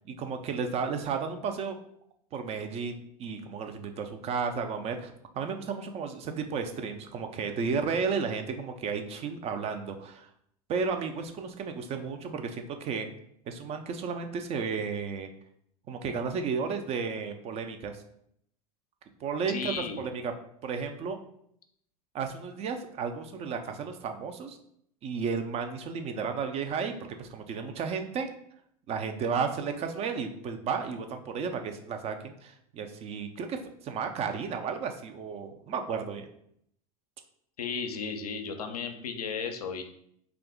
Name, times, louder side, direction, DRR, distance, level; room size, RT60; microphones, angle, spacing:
voice 1, 0.0-1.8 2.3-10.3 10.7-13.1 13.5-15.3 15.9-18.0 19.2-20.3 20.6-21.2 22.1-24.6 25.0-26.9 27.2-28.3 28.9-36.3, right 5 dB, 35° right, 6 dB, 0.4 m, -33 dB
voice 2, 19.5-20.1 37.6-39.8, left 5 dB, 80° left, 6 dB, 0.4 m, -34 dB
2.6 x 2.4 x 3.6 m, 0.70 s
hypercardioid pair, 85°, 19 cm